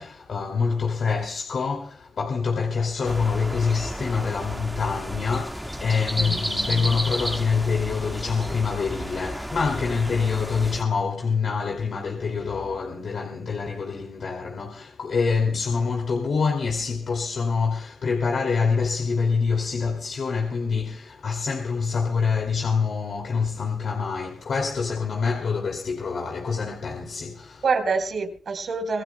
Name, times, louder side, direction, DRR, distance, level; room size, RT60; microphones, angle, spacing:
voice 1, 0.0-27.6, left 5 dB, 55° left, 2.5 m, -26 dB
sound 1, 3.0-10.8, equal, ahead, 1.8 m, -32 dB
voice 2, 6.2-7.0 27.6-29.0, right 4 dB, 55° right, 4.3 m, -27 dB
26.0 x 18.0 x 2.2 m
cardioid pair, 75°, 0 cm